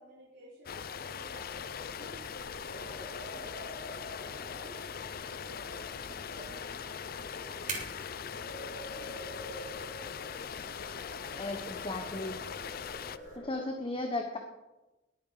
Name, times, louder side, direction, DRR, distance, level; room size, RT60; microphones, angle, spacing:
voice 1, 0.0-4.8 5.2-7.9, right 1 dB, 75° right, -7 dB, 4.5 m, -54 dB
sound 1, 0.7-13.2, left 7 dB, 55° left, 0.5 m, -41 dB
sound 2, 1.5-13.4, right 4 dB, 45° right, 3.7 m, -51 dB
sound 3, 2.6-13.7, left 1 dB, 75° left, 5.2 m, -48 dB
voice 2, 11.3-12.4 13.3-14.4, left 2 dB, 30° left, 4 dB, 1.2 m, -35 dB
20.5 x 8.7 x 5.1 m, 1.1 s
head